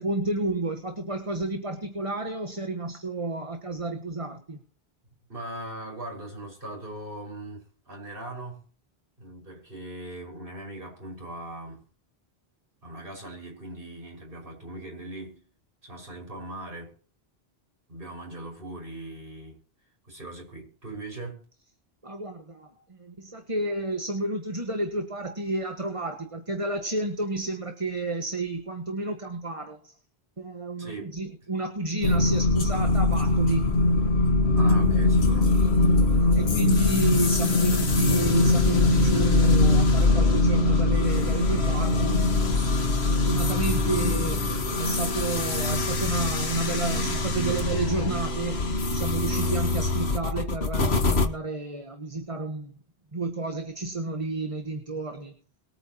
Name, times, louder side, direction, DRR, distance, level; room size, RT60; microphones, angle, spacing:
voice 1, 0.0-4.6 22.0-29.9 30.4-33.6 36.4-42.4 42.7-44.5 44.8-52.7 53.1-55.3, right 2 dB, 30° right, 1.7 m, -31 dB
voice 2, 5.3-8.6 9.2-11.8 12.8-15.4 15.8-17.0 17.9-19.6 20.0-21.4 30.8-31.2 34.5-36.4, right 1 dB, 60° right, 6.3 m, -40 dB
sound 1, 32.0-51.3, left 2 dB, 90° left, 1.8 m, -22 dB
23.0 x 9.0 x 3.0 m
omnidirectional pair, 1.0 m